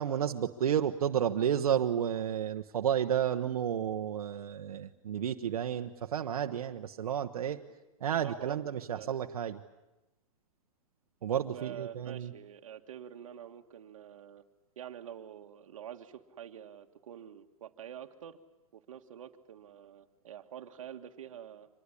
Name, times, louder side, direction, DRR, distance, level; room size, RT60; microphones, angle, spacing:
voice 1, 0.0-7.6 8.0-9.6 11.2-12.3, right 9 dB, 90° right, 5 dB, 1.2 m, -31 dB
voice 2, 8.1-9.2 11.3-14.4 14.8-18.4 18.7-21.7, right 9 dB, 65° right, 6 dB, 1.7 m, -47 dB
25.0 x 20.5 x 9.9 m, 0.99 s
hypercardioid pair, 175°, 18 cm